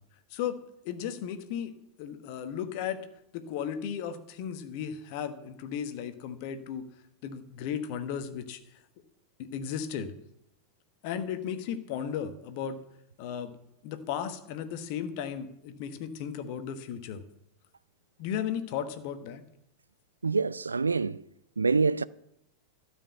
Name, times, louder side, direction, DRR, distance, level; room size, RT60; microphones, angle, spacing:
voice 1, 0.8-3.0 3.3-6.8 7.2-8.6 9.4-10.1 11.0-12.8 13.2-13.5 13.8-17.2 18.2-19.4, left 8 dB, 45° left, 1.3 m, -35 dB
voice 2, 20.2-21.2 21.6-22.0, right 4 dB, 75° right, 0.3 m, -26 dB
12.5 x 6.4 x 8.0 m
figure-of-eight pair, 90°, 0 cm